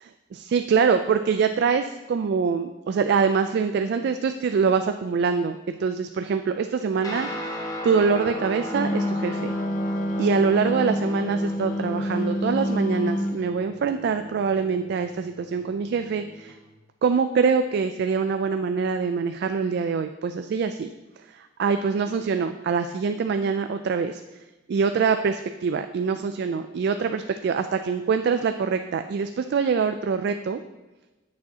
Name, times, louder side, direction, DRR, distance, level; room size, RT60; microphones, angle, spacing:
voice 1, 0.0-7.3 7.8-9.5 10.2-16.6 17.0-20.9 21.3-24.4 24.7-30.6, right 5 dB, 60° right, 8 dB, 0.3 m, -24 dB
Guitar, 7.0-16.6, equal, 20° left, 1.0 m, -36 dB
Wind instrument woodwind instrument, 8.7-13.4, equal, 45° left, 0.5 m, -27 dB
9.5 x 6.3 x 2.8 m, 1.1 s
head